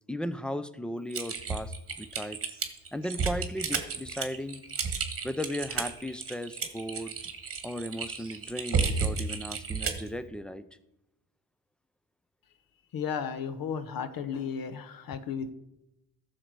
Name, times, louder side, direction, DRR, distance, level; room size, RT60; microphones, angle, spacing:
voice 1, 0.1-2.4 2.9-4.6 5.2-7.2 7.6-10.6, equal, ahead, 14 dB, 0.4 m, -36 dB
Typing, 1.1-10.1, right 5 dB, 30° right, 1.4 m, -32 dB
voice 2, 12.9-15.5, left 7 dB, 55° left, 12 dB, 0.9 m, -34 dB
14.0 x 6.6 x 4.7 m, 0.89 s
cardioid pair, 120°, 42 cm